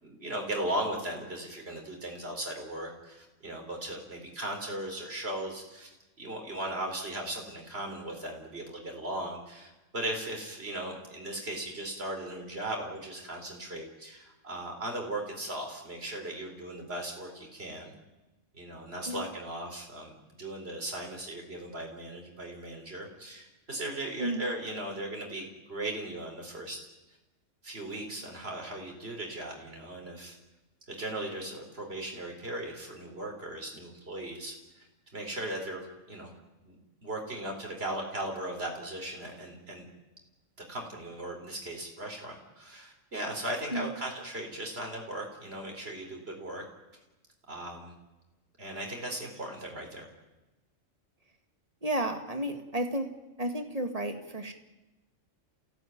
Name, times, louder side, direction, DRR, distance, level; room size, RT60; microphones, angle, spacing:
voice 1, 0.0-17.9 18.5-20.1 20.4-26.9 27.6-30.3 30.9-34.9 35.1-36.3 36.6-36.8 37.0-39.9 40.7-46.6 47.5-47.9 48.6-50.1, right 1 dB, 50° right, 1 dB, 4.7 m, -37 dB
voice 2, 51.8-53.1 53.4-54.5, right 1 dB, 30° right, 6 dB, 2.1 m, -32 dB
28.0 x 16.5 x 9.4 m, 1.1 s
omnidirectional pair, 1.4 m